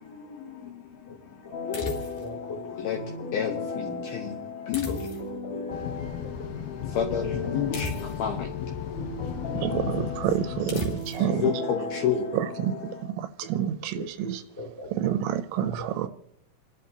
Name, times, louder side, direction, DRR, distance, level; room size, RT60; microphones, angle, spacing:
sound 1, 1.5-13.1, left 4 dB, 25° left, 3.0 m, -36 dB
voice 1, 1.7-2.0 2.6-4.4 4.7-5.2 5.8-6.2 6.7-8.5 8.9-9.0 9.3-9.6 11.2-12.3, left 7 dB, 70° left, 2.4 m, -30 dB
sound 2, 1.7-2.4 4.7-5.5 7.7-8.4 10.7-11.3, left 2 dB, 50° left, 3.8 m, -37 dB
voice 2, 2.2-2.6 5.5-5.6 10.8-11.0 11.3-11.4 14.0-15.1 15.6-15.9, left 1 dB, 5° left, 2.0 m, -38 dB
sound 3, 5.7-11.0, left 8 dB, 90° left, 3.3 m, -35 dB
voice 3, 9.6-11.5 12.3-12.7 13.2-14.4 14.9-16.1, right 11 dB, 80° right, 2.9 m, -28 dB
28.0 x 12.0 x 2.9 m
omnidirectional pair, 5.6 m